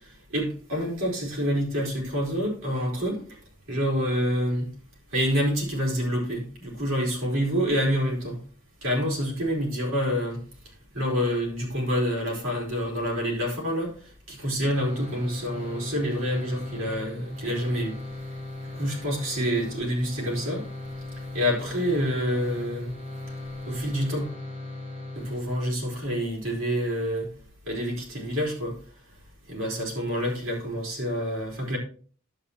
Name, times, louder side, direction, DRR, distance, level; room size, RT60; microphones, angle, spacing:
voice 1, 0.3-3.2 3.7-4.7 5.1-8.4 8.8-10.4 10.9-13.9 14.3-18.0 18.8-20.6 21.3-22.9 23.7-24.3 25.1-27.3 27.7-28.8 29.5-31.8, equal, 80° right, -3 dB, 4.5 m, -27 dB
sound 1, 14.6-26.0, left 2 dB, 30° right, 2.8 m, -38 dB
11.0 x 8.2 x 2.9 m, 0.43 s
head